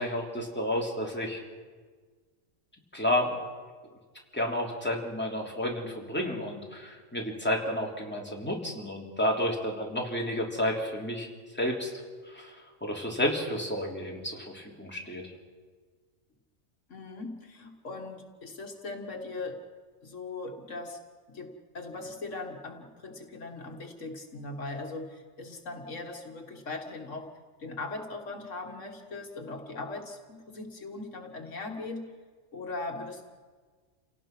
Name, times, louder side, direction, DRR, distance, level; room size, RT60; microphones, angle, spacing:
voice 1, 0.0-1.4 2.9-3.4 4.3-11.3 11.5-11.9 12.3-12.6 12.8-15.2, left 1 dB, 10° left, -1 dB, 3.1 m, -31 dB
voice 2, 16.9-19.6 20.0-21.0 21.3-27.3 27.6-32.0 32.5-33.2, left 3 dB, 70° left, 3 dB, 2.0 m, -39 dB
28.5 x 17.5 x 6.0 m, 1.5 s
omnidirectional pair, 1.3 m